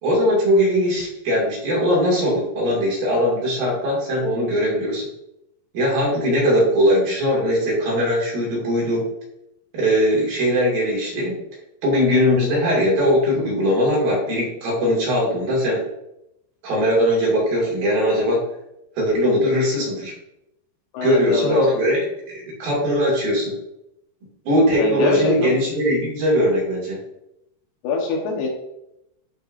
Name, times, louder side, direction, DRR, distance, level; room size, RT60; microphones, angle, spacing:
voice 1, 0.0-5.0 5.7-9.1 9.7-11.4 11.8-15.8 16.6-18.4 19.0-20.1 21.0-23.5 24.5-27.0, equal, 65° right, -4 dB, 4.0 m, -20 dB
voice 2, 20.9-21.6 24.8-25.6 27.8-28.5, left 4 dB, 85° left, 1 dB, 3.4 m, -24 dB
12.0 x 4.8 x 2.6 m, 0.85 s
omnidirectional pair, 4.4 m